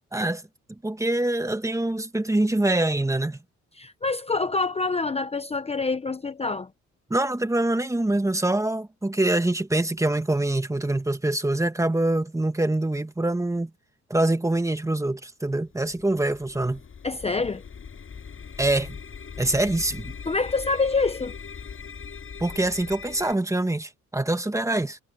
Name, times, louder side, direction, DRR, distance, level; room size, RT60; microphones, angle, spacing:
voice 1, 0.1-0.4 0.7-3.4 7.1-13.7 14.1-16.8 18.6-19.0 19.4-20.1 22.4-25.0, right 2 dB, 10° right, 1.5 m, -24 dB
voice 2, 3.8-6.7 17.0-17.6 20.3-21.3, left 3 dB, 20° left, 0.9 m, -26 dB
sound 1, 15.6-23.4, left 6 dB, 45° left, 5.9 m, -40 dB
cardioid pair, 90°, 30 cm